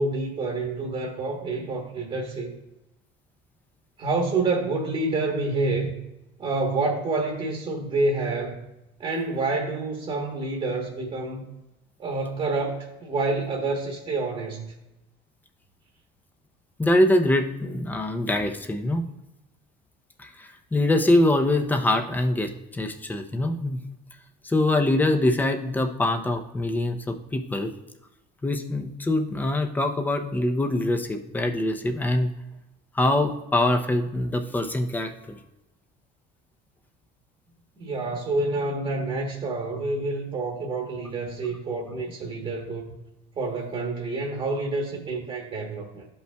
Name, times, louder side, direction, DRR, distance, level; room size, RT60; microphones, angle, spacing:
voice 1, 0.0-2.5 4.0-6.0 6.4-8.6 9.0-11.4 12.0-14.7 37.8-42.9 43.3-46.1, right 3 dB, 30° right, 0 dB, 1.2 m, -28 dB
voice 2, 16.8-19.0 20.2-23.8 24.4-27.7 28.4-32.3 32.9-35.4, left 1 dB, 10° left, 5 dB, 0.6 m, -24 dB
13.0 x 5.5 x 2.3 m, 0.94 s
cardioid pair, 150°, 19 cm